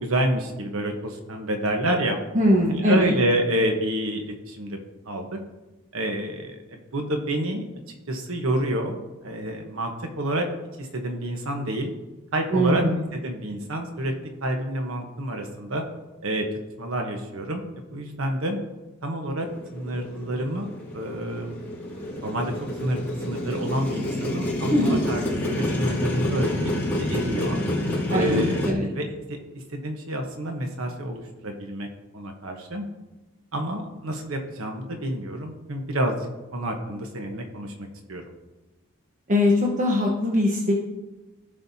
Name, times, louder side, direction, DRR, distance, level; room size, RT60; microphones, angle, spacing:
voice 1, 0.0-2.2 2.7-4.8 5.1-5.4 5.9-7.6 8.1-9.0 9.2-10.4 10.8-11.9 12.3-12.8 13.1-15.8 16.2-16.5 16.8-17.6 17.9-18.6 19.0-19.5 19.7-20.7 20.9-21.6 22.2-22.5 22.8-26.6 27.0-27.6 28.1-31.9 32.1-32.9 33.5-38.2, right 1 dB, 70° right, 3 dB, 1.1 m, -28 dB
voice 2, 2.3-3.1 12.5-13.0 24.7-25.0 28.1-28.9 39.3-40.7, left 1 dB, 40° right, -2 dB, 1.0 m, -21 dB
Motorcycle, 19.4-28.7, left 1 dB, 10° left, 2.6 m, -28 dB
16.0 x 5.5 x 2.8 m, 1.1 s
head